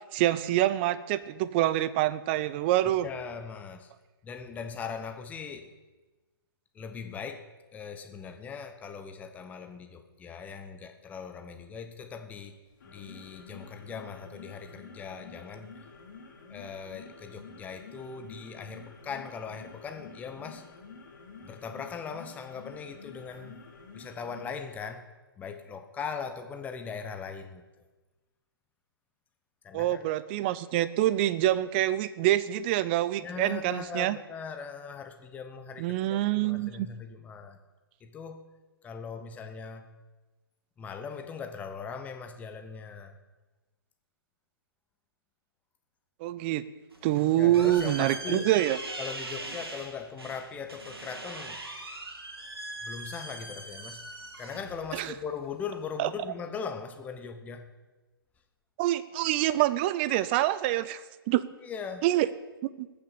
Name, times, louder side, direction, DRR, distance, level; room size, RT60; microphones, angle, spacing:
voice 1, 0.1-3.1 29.7-34.2 35.8-36.9 46.2-46.6 47.0-48.8 54.9-55.1 56.0-56.1 58.8-61.4 62.0-62.3 62.8-62.9, right 14 dB, 25° right, 16 dB, 0.5 m, -26 dB
voice 2, 3.0-3.9 4.2-5.7 6.7-12.6 12.8-15.8 16.5-20.7 21.4-23.6 23.9-25.0 25.4-27.6 29.6-30.1 33.2-37.6 38.0-38.4 38.8-39.9 40.8-43.2 47.4-48.5 49.0-51.6 52.8-54.0 54.4-57.7 61.6-62.0, left 6 dB, 10° left, 7 dB, 0.9 m, -40 dB
sound 1, 12.7-24.7, left 4 dB, 50° left, 3.5 m, -49 dB
sound 2, 46.9-56.0, right 2 dB, 75° right, 2.5 m, -41 dB
19.0 x 7.0 x 6.6 m, 1.2 s
figure-of-eight pair, 130°, 13 cm